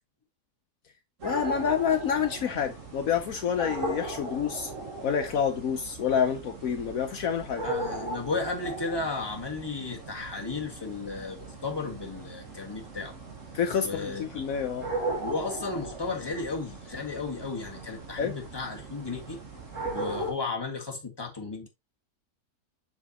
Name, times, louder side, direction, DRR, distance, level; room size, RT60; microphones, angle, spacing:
voice 1, 1.2-4.7 5.0-7.6 13.5-14.9 18.2-18.4, left 7 dB, 70° left, 1.2 m, -28 dB
sound 1, 1.2-20.3, right 2 dB, 55° right, 2.3 m, -38 dB
voice 2, 7.6-13.1 13.8-14.5 15.2-19.4 19.9-21.7, left 4 dB, 15° left, 1.8 m, -34 dB
7.0 x 6.2 x 2.8 m
omnidirectional pair, 1.6 m